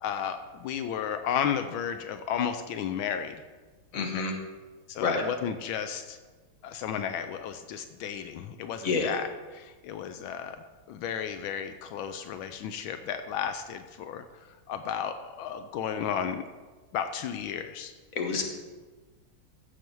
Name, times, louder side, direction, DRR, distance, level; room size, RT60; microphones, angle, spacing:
voice 1, 0.0-3.4 3.9-4.2 4.9-6.2 6.6-16.4 16.9-17.9, left 8 dB, 85° left, 9 dB, 1.4 m, -33 dB
voice 2, 3.9-4.3 5.0-5.2 8.8-9.2 18.1-18.4, left 4 dB, 45° left, 3 dB, 1.5 m, -28 dB
15.0 x 7.0 x 4.6 m, 1.3 s
omnidirectional pair, 2.2 m